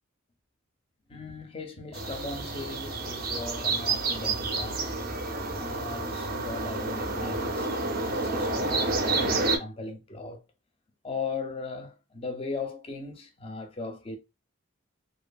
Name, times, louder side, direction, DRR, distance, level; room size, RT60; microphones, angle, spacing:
voice 1, 1.1-4.9 5.6-10.4 11.0-14.2, left 3 dB, 25° left, 0.4 m, -38 dB
sound 1, 1.9-9.6, right 3 dB, 45° right, 0.5 m, -29 dB
2.6 x 2.5 x 2.2 m
head